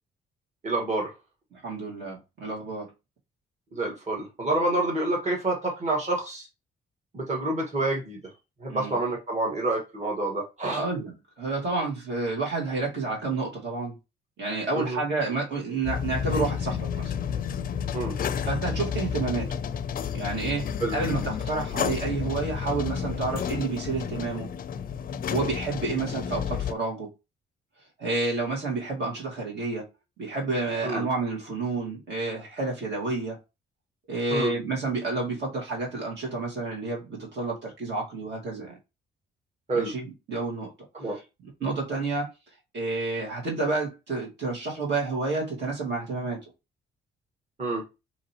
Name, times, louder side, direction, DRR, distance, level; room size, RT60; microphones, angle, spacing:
voice 1, 0.6-1.1 3.7-6.5 7.1-8.2 8.6-10.8 14.7-15.0 17.9-18.1 20.8-20.9 30.8-31.0 34.3-34.5 39.7-39.9 40.9-41.2 47.6-47.8, right 2 dB, 35° right, 1.7 m, -28 dB
voice 2, 1.5-2.9 8.7-9.0 10.7-13.9 14.4-17.1 18.5-19.5 20.1-24.5 25.3-27.1 28.0-29.8 30.2-33.4 34.1-38.8 39.7-40.7 41.6-42.3 42.7-46.4, right 3 dB, 60° right, 2.0 m, -30 dB
sound 1, 15.8-26.7, left 7 dB, 45° left, 0.4 m, -31 dB
4.9 x 3.0 x 3.0 m
cardioid pair, 90°, 20 cm